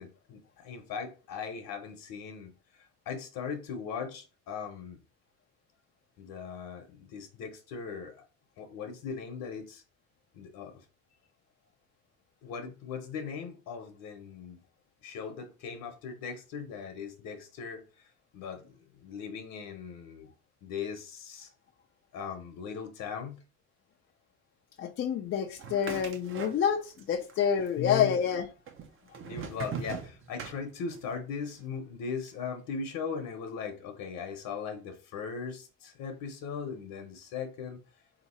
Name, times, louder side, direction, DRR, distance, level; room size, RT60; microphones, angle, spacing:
voice 1, 0.0-5.0 6.2-8.2 8.6-9.8 10.3-10.8 12.4-14.6 15.0-20.3 20.6-21.5 22.1-23.4 25.7-25.8 27.8-28.2 29.2-37.8, left 6 dB, 60° left, 0.9 m, -39 dB
voice 2, 24.8-26.8 27.1-28.5, left 8 dB, 35° left, 0.4 m, -28 dB
sound 1, 25.6-27.0 27.3-28.0 28.7-31.1, right 6 dB, 35° right, 0.6 m, -40 dB
3.7 x 2.8 x 4.2 m
cardioid pair, 130°, 38 cm